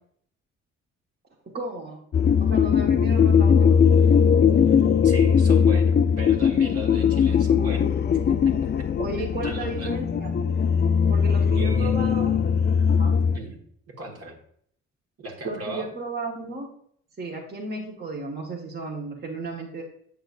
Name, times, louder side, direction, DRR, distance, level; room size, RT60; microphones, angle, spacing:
voice 1, 1.5-2.0 2.4-3.8 9.0-10.3 11.1-12.4 13.0-13.1 15.4-16.7 17.2-19.8, right 2 dB, 35° right, -2 dB, 1.2 m, -34 dB
sound 1, 2.1-13.4, left 7 dB, 35° left, 0.4 m, -20 dB
voice 2, 5.0-8.0 8.3-8.7 9.2-9.9 11.5-12.1 13.3-13.6 13.9-14.4 15.2-15.9, right 1 dB, 50° right, 0 dB, 1.5 m, -38 dB
8.2 x 6.1 x 2.4 m, 0.65 s
cardioid pair, 90°, 30 cm